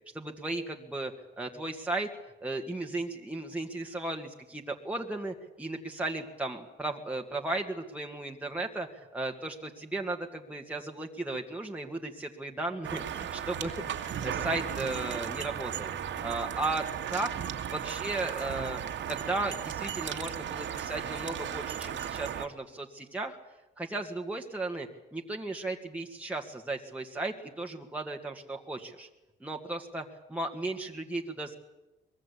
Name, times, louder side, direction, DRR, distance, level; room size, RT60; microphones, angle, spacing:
voice 1, 0.1-2.1 2.4-15.9 16.2-17.3 17.7-18.8 19.1-23.4 23.8-29.1 29.4-31.5, right 2 dB, 5° right, 1 dB, 2.0 m, -35 dB
sound 1, 12.8-22.5, right 9 dB, 70° right, 2.1 m, -36 dB
24.0 x 21.0 x 8.5 m, 1.0 s
cardioid pair, 90°, 20 cm